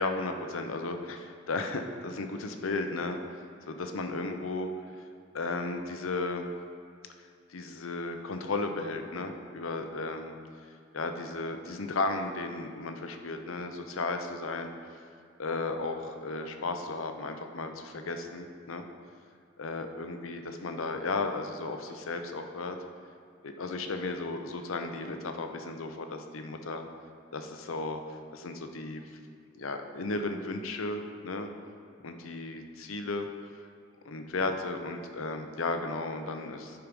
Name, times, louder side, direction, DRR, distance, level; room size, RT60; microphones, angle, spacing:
voice 1, 0.0-4.7 5.0-5.1 5.3-6.5 7.5-10.4 10.9-14.7 15.4-18.8 19.6-22.8 23.4-26.8 27.3-29.2 29.5-31.5 32.0-33.6 34.0-36.9, left 3 dB, 85° left, 6 dB, 0.7 m, -34 dB
10.5 x 4.7 x 5.3 m, 2.3 s
head